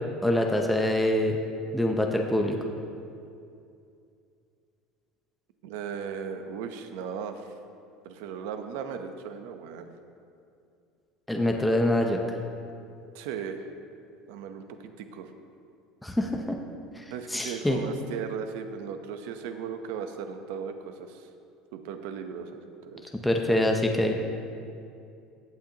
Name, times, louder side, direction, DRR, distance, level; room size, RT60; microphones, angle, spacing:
voice 1, 0.2-1.4 1.7-2.6 11.3-12.2 16.0-16.6 17.0-17.8 23.2-24.1, left 1 dB, 5° left, 2 dB, 0.6 m, -25 dB
voice 2, 5.6-7.5 8.0-9.9 13.1-13.7 14.3-15.3 17.1-21.3 21.7-22.6 22.9-23.1, right 7 dB, 75° right, 7 dB, 0.8 m, -37 dB
16.0 x 8.6 x 2.9 m, 2.5 s
cardioid pair, 165°, 0 cm